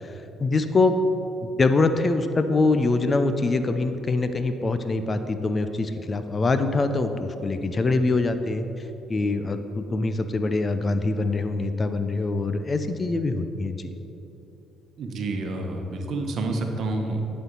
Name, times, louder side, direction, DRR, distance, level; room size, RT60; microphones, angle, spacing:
voice 1, 0.4-1.0 1.4-8.6 9.1-13.9, left 3 dB, 35° left, 9 dB, 0.6 m, -24 dB
voice 2, 15.0-17.2, right 2 dB, 60° right, 3 dB, 1.0 m, -28 dB
11.0 x 4.4 x 5.4 m, 2.9 s
supercardioid pair, 60°, 0 cm